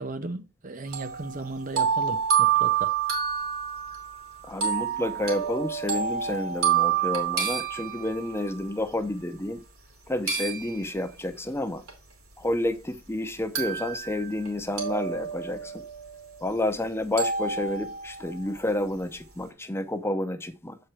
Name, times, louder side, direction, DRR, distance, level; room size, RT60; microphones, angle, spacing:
voice 1, 0.0-2.9, right 2 dB, 40° right, 0.6 m, -36 dB
sound 1, 0.9-8.5 10.3-11.2 11.9-12.0 13.5-14.5 14.8-16.5 17.2-18.5, right 8 dB, 75° right, 2.8 m, -28 dB
voice 2, 4.4-9.6 10.1-11.8 12.4-15.8 16.4-20.8, left 1 dB, 10° left, 0.7 m, -30 dB
7.7 x 4.5 x 4.8 m
head